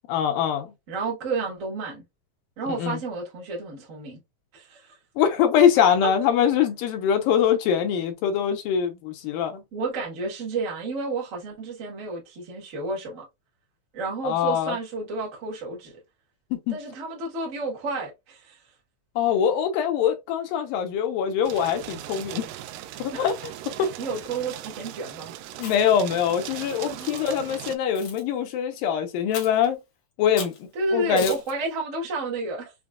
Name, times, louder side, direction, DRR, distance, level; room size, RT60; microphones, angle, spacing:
voice 1, 0.1-0.7 2.7-3.0 5.2-9.6 14.2-14.8 16.5-16.8 19.2-22.4 23.0-23.3 23.8-23.9 25.6-29.8 30.2-31.3, left 8 dB, 80° left, 2.4 m, -23 dB
voice 2, 0.9-2.0 2.6-4.2 4.5-5.0 9.7-13.3 13.9-15.9 16.7-18.6 23.1-23.3 23.8-25.3 26.9-27.4 30.7-32.7, right 3 dB, 65° right, 0.7 m, -31 dB
sound 1, 21.4-27.8, right 13 dB, 80° right, 2.1 m, -39 dB
Chewing mastication, 25.5-26.0 26.7-27.3 27.9-28.2 29.3-29.7 30.4-30.6 31.2-31.5, left 6 dB, 65° left, 1.5 m, -37 dB
6.1 x 2.2 x 2.3 m
omnidirectional pair, 4.0 m